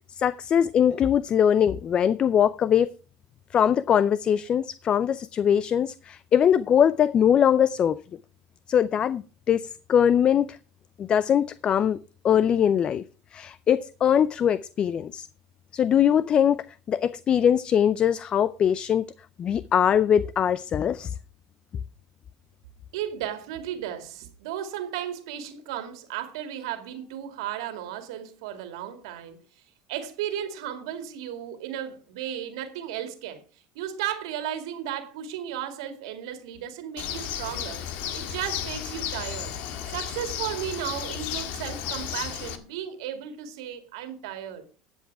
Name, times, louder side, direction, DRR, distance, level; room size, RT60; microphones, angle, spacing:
voice 1, 0.1-2.9 3.5-8.0 8.7-10.6 11.0-12.0 12.2-13.0 13.3-15.3 15.7-19.1 19.4-21.1, left 9 dB, 35° left, 0.5 m, -22 dB
voice 2, 22.9-29.4 29.9-33.4 33.7-37.8 38.1-39.5 39.9-44.7, right 10 dB, 85° right, 2.3 m, -34 dB
Bird, 37.0-42.6, left 9 dB, 65° left, 1.7 m, -33 dB
12.5 x 8.0 x 4.7 m
supercardioid pair, 110°, 3 cm